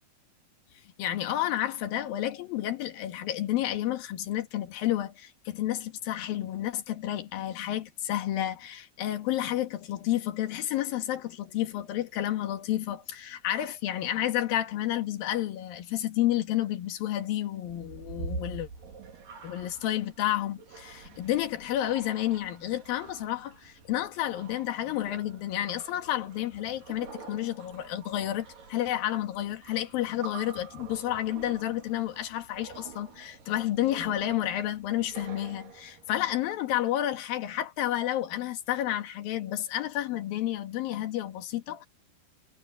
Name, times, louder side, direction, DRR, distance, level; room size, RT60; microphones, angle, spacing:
voice 1, 1.0-18.7 19.4-41.9, left 13 dB, 70° left, 3.3 m, -30 dB
sound 1, 17.6-36.4, right 5 dB, 60° right, 4.8 m, -46 dB
omnidirectional pair, 4.4 m